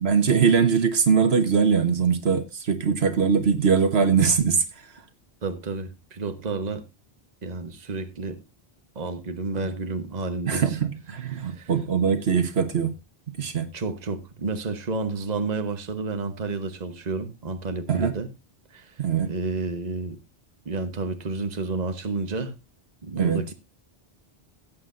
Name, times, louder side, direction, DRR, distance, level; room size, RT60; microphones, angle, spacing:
voice 1, 0.0-4.6 9.6-9.7 10.5-12.9 13.4-13.7 17.9-18.1 19.0-19.3 23.1-23.4, right 6 dB, 75° right, 1.4 m, -22 dB
voice 2, 5.4-6.8 7.4-8.4 8.9-10.8 11.3-11.7 13.7-18.3 18.7-18.9 19.3-20.2 20.6-22.5 23.0-23.5, right 3 dB, 45° right, 1.2 m, -30 dB
17.0 x 8.5 x 2.6 m
omnidirectional pair, 1.1 m